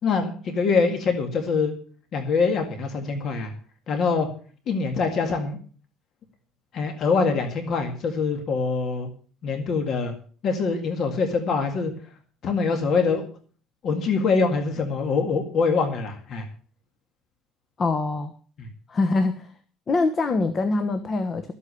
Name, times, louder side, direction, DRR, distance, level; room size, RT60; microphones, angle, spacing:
voice 1, 0.0-1.7 2.1-3.5 3.9-4.3 4.7-5.6 6.7-9.1 9.4-10.1 10.4-11.9 12.4-13.2 13.8-16.4 18.6-18.7, left 4 dB, 40° left, 4 dB, 2.0 m, -24 dB
voice 2, 17.8-18.3 18.9-19.5 19.9-21.5, left 3 dB, 25° left, 9 dB, 1.0 m, -24 dB
13.5 x 8.4 x 7.0 m, 0.43 s
cardioid pair, 165°, 0 cm